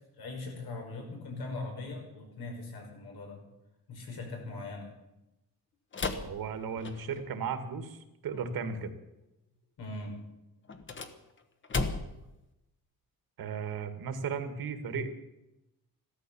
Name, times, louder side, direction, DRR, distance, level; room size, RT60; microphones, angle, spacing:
voice 1, 0.2-3.4 3.9-4.9 9.8-10.2, left 2 dB, 90° left, 2 dB, 5.8 m, -40 dB
sound 1, 5.9-7.3 10.6-12.3, left 3 dB, 30° left, 1.2 m, -35 dB
voice 2, 6.2-8.9 13.4-15.1, right 6 dB, 75° right, 8 dB, 2.0 m, -35 dB
15.0 x 13.0 x 7.1 m, 0.93 s
wide cardioid pair, 175°, 36 cm